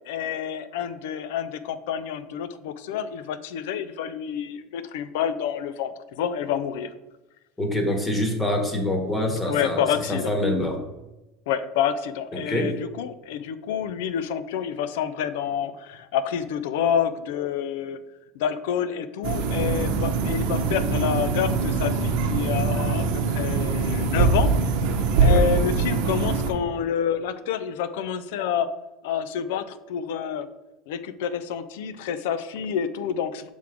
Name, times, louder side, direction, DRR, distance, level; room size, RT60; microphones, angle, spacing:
voice 1, 0.1-6.9 9.5-10.3 11.5-18.0 18.3-24.5 25.2-28.7 29.0-30.5 30.9-33.5, left 8 dB, 80° left, 12 dB, 0.4 m, -28 dB
voice 2, 7.6-10.8 12.3-12.7 25.2-25.4, left 1 dB, 15° left, 4 dB, 1.2 m, -26 dB
sound 1, 19.2-26.5, right 4 dB, 65° right, 0.8 m, -23 dB
5.9 x 3.6 x 4.7 m, 1.0 s
supercardioid pair, 125°, 0 cm